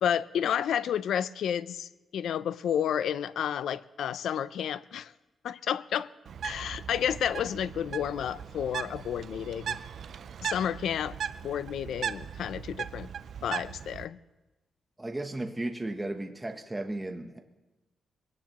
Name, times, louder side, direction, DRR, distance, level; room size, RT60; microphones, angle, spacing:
voice 1, 0.0-5.1 5.4-6.1 6.4-9.8 10.4-11.2 11.4-13.1 13.4-14.2, left 9 dB, 90° left, 0.5 m, -31 dB
Bird, 6.3-14.1, right 8 dB, 65° right, 0.5 m, -38 dB
voice 2, 15.0-17.4, right 2 dB, 15° right, 1.0 m, -35 dB
23.0 x 17.5 x 3.0 m
cardioid pair, 125°, 0 cm